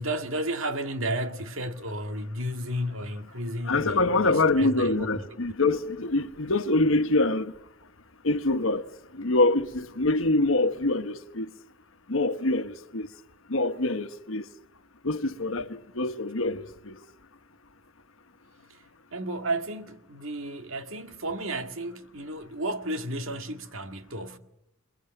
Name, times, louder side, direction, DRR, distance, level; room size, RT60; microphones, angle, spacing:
voice 1, 0.0-5.3 18.7-24.4, right 1 dB, 70° right, 2.0 m, -33 dB
voice 2, 3.6-7.5 8.2-11.5 12.1-13.1 13.5-14.5 15.0-17.0, left 2 dB, 70° left, 1.3 m, -25 dB
29.5 x 21.5 x 9.1 m
head